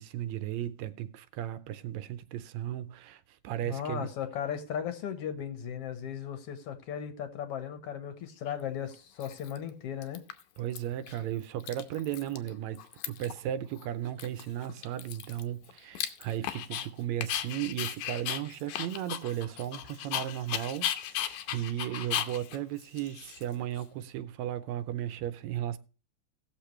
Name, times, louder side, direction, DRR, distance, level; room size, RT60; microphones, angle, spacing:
voice 1, 0.0-4.1 10.6-12.8 13.1-25.8, right 12 dB, 75° right, 1.8 m, -35 dB
voice 2, 3.6-10.2, left 9 dB, 60° left, 1.9 m, -36 dB
Dog, 8.5-8.6 9.2-9.7 10.0-10.8 11.1-11.2 11.4-12.5 12.8-13.4 13.8-13.9 14.2-16.9 17.2-23.8, left 11 dB, 85° left, 2.2 m, -36 dB
18.0 x 6.8 x 3.1 m
omnidirectional pair, 3.4 m